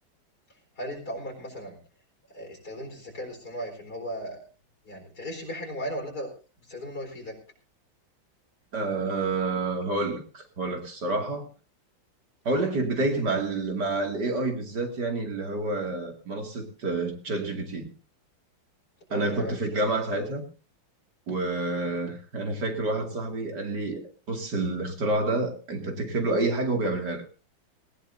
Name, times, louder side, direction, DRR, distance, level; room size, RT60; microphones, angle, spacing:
voice 1, 0.8-1.8 2.3-4.4 4.8-6.3 6.6-7.3 13.3-13.4 19.1-19.7, equal, 50° left, 4.8 m, -36 dB
voice 2, 8.7-11.5 12.4-17.9 19.1-20.4 21.3-27.2, right 2 dB, 55° right, 2.9 m, -28 dB
18.5 x 18.5 x 2.7 m
omnidirectional pair, 2.1 m